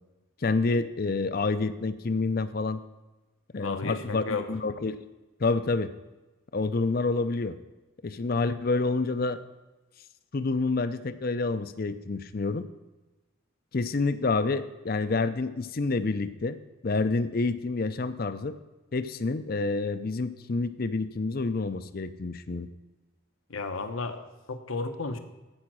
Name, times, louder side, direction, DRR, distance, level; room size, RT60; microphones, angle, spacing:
voice 1, 0.4-2.8 3.5-5.1 5.4-5.9 6.5-7.6 8.0-9.4 10.3-12.7 13.7-18.6 18.9-22.7, left 3 dB, 45° left, 13 dB, 0.5 m, -28 dB
voice 2, 3.6-4.5 23.5-25.2, left 3 dB, 80° left, 8 dB, 1.0 m, -33 dB
15.0 x 5.2 x 6.1 m, 1.1 s
head